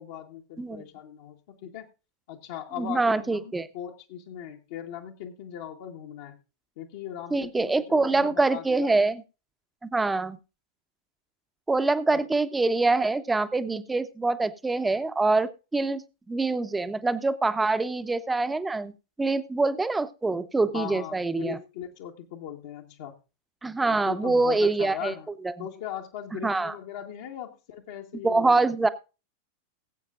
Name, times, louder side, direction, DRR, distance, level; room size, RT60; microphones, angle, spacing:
voice 1, 0.0-1.9 2.3-6.4 6.8-9.0 12.1-12.2 20.7-23.1 23.9-25.3 25.6-28.6, left 10 dB, 50° left, 1 dB, 1.4 m, -39 dB
voice 2, 2.8-3.7 7.3-9.2 9.8-10.4 11.7-16.0 16.3-18.9 19.2-21.6 23.6-25.1 25.4-25.7 26.4-26.7 28.2-28.9, right 3 dB, 10° right, 13 dB, 0.9 m, -25 dB
20.0 x 8.3 x 2.5 m, 0.30 s
figure-of-eight pair, 90°, 0 cm